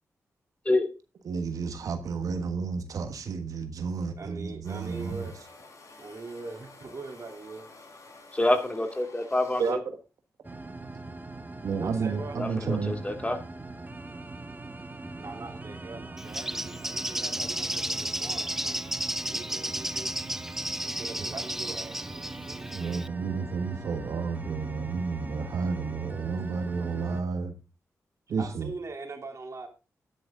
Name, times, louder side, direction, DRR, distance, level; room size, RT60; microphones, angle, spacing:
voice 1, 1.2-5.3 9.6-10.0 11.6-13.0 22.7-27.5 28.3-28.7, right 5 dB, 80° right, 1.4 m, -31 dB
voice 2, 4.2-5.3 6.0-7.7 11.8-12.4 15.2-18.9 19.2-20.1 20.8-23.1 28.4-29.7, right 3 dB, 55° right, 3.2 m, -42 dB
sound 1, 4.6-9.7, left 3 dB, 65° left, 4.9 m, -51 dB
voice 3, 8.3-9.8 12.4-13.4, left 1 dB, 20° left, 2.5 m, -27 dB
sound 2, 10.4-27.2, right 2 dB, 30° right, 1.8 m, -41 dB
Bird, 16.2-23.1, right 1 dB, 5° right, 0.5 m, -33 dB
10.5 x 10.5 x 3.8 m
cardioid pair, 50°, 6 cm